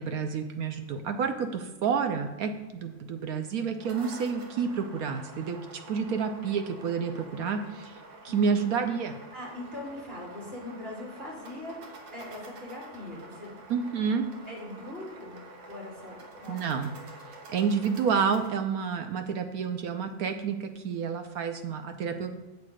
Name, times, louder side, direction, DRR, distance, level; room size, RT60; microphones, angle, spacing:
voice 1, 0.0-5.6 5.9-8.0 8.2-9.2 13.7-14.2 16.5-16.9 17.5-22.3, right 6 dB, 65° right, 7 dB, 0.9 m, -29 dB
sound 1, 3.6-18.5, right 2 dB, 85° right, 2.1 m, -48 dB
voice 2, 5.9-6.3 8.3-8.6 9.3-11.8 12.1-13.5 14.5-15.4 15.7-16.8, left 1 dB, 25° right, -3 dB, 2.8 m, -41 dB
8.3 x 6.6 x 4.9 m, 1.1 s
omnidirectional pair, 2.0 m